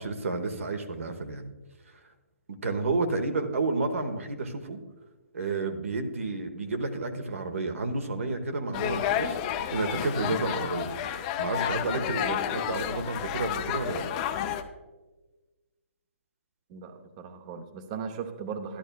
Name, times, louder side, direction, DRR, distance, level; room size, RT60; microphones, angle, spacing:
voice 1, 0.0-1.5 2.5-4.8 5.3-10.9 11.4-14.2, right 3 dB, 75° right, 7 dB, 1.1 m, -31 dB
sound 1, 8.7-14.6, left 10 dB, 30° left, 0.5 m, -31 dB
voice 2, 16.7-18.8, right 6 dB, 30° right, 7 dB, 0.7 m, -38 dB
11.5 x 11.0 x 2.3 m, 1.2 s
hypercardioid pair, 145°, 7 cm